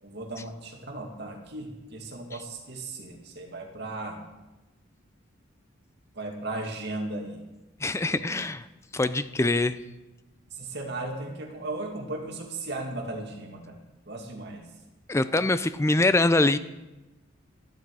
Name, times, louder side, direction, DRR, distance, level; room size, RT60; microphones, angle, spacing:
voice 1, 0.0-4.2 6.1-7.4 8.1-8.3 10.5-13.8 14.1-14.6, right 2 dB, 55° right, 1 dB, 2.2 m, -36 dB
voice 2, 7.8-8.7 8.9-9.8 15.1-16.6, left 2 dB, 15° left, 13 dB, 0.4 m, -23 dB
12.5 x 11.5 x 4.8 m, 1.1 s
head